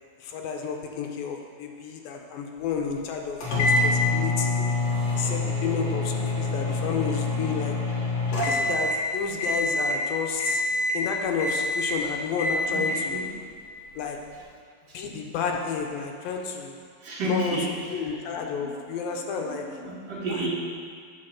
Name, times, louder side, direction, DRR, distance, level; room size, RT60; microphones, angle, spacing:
voice 1, 0.2-4.6 5.1-7.8 8.3-10.6 10.9-13.2 14.0-14.2 14.9-16.8 17.2-17.6 17.9-19.7 20.3-20.5, left 6 dB, 80° left, 2 dB, 2.5 m, -31 dB
sound 1, 3.4-9.1 9.4-10.0 10.4-11.0 11.4-12.0 12.4-13.0, left 2 dB, 50° left, 2.2 m, -26 dB
voice 2, 17.0-17.7 18.6-18.7 19.1-20.5, right 2 dB, 50° right, -7 dB, 2.6 m, -31 dB
10.0 x 4.8 x 6.4 m, 2.1 s
omnidirectional pair, 4.1 m